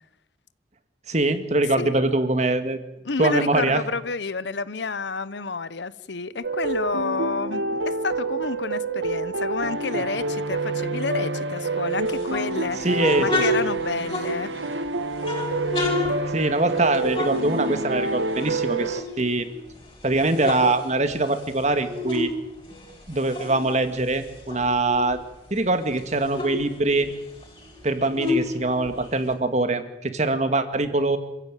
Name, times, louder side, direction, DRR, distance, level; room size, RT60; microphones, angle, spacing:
voice 1, 1.1-2.8 3.2-3.8 12.8-13.4 16.3-19.5 20.0-22.3 23.1-25.2 25.5-27.1 27.8-31.2, right 2 dB, 40° right, 9 dB, 2.1 m, -23 dB
voice 2, 3.0-12.8 13.2-14.5, left 4 dB, 70° left, 17 dB, 0.9 m, -29 dB
Twlight Piano loop, 6.4-19.0, right 3 dB, 90° right, 1.4 m, -28 dB
sound 1, 12.1-14.7 15.2-18.1 18.3-19.7 20.1-22.3 22.6-25.2 25.6-25.7 25.9-29.3, left 2 dB, 25° left, 6.4 m, -30 dB
27.0 x 15.5 x 9.2 m, 0.95 s
head